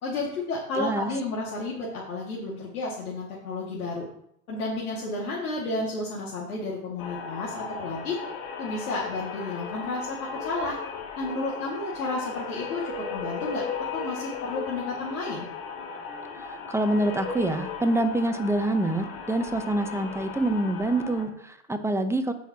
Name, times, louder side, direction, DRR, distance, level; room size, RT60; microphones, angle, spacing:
voice 1, 0.0-4.1 4.5-8.2 8.6-10.8 11.2-13.6 13.9-15.5, left 2 dB, 85° left, -5 dB, 2.3 m, -32 dB
voice 2, 0.8-1.1 16.4-22.3, right 1 dB, 5° right, 7 dB, 0.9 m, -26 dB
sound 1, 7.0-21.2, left 5 dB, 50° left, 2.4 m, -36 dB
14.5 x 5.7 x 2.9 m, 0.73 s
hypercardioid pair, 100°, 43 cm